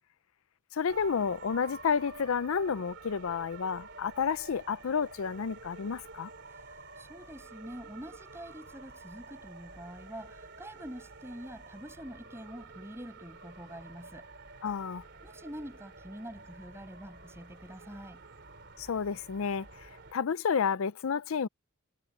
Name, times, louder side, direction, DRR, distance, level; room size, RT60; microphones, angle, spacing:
voice 1, 0.7-6.3 14.6-15.0 18.8-21.5, left 6 dB, 75° left, 0.5 m, -31 dB
sound 1, 0.9-20.1, right 3 dB, 55° right, 3.6 m, -49 dB
voice 2, 6.5-14.3 15.2-18.2, equal, 10° right, 7.9 m, -46 dB
head